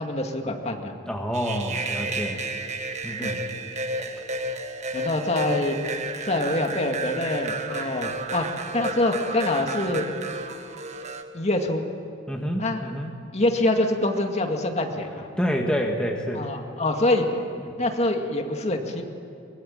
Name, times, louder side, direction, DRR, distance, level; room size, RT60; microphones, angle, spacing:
voice 1, 0.0-0.9 2.2-2.4 3.2-3.4 4.9-5.8 6.2-10.1 11.3-11.8 12.6-12.8 13.3-15.3 16.3-17.3 17.8-19.0, left 2 dB, 35° left, 3 dB, 2.2 m, -25 dB
voice 2, 1.1-2.4 3.0-3.4 12.3-13.1 15.4-16.6 17.6-17.8, equal, 5° left, 1 dB, 1.6 m, -28 dB
sound 1, 1.3-11.2, right 2 dB, 40° right, 1.5 m, -32 dB
23.5 x 21.0 x 9.0 m, 2.6 s
head